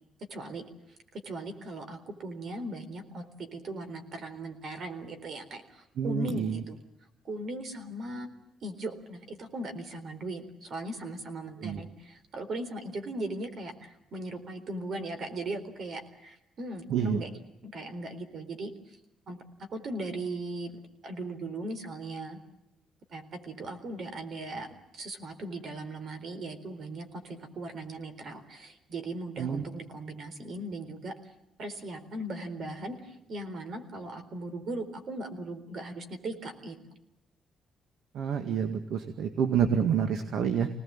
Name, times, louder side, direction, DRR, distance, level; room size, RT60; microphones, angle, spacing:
voice 1, 0.3-0.6 1.1-6.8 7.2-8.3 8.6-17.3 17.6-19.0 19.3-19.4 19.7-20.8 21.0-22.4 23.1-31.3 31.6-36.8, right 2 dB, 50° right, 9 dB, 4.0 m, -38 dB
voice 2, 6.0-6.6 11.6-11.8 16.9-17.2 29.4-29.6 38.1-40.7, right 7 dB, 70° right, 8 dB, 1.9 m, -28 dB
27.0 x 19.0 x 8.8 m, 0.82 s
cardioid pair, 140°, 0 cm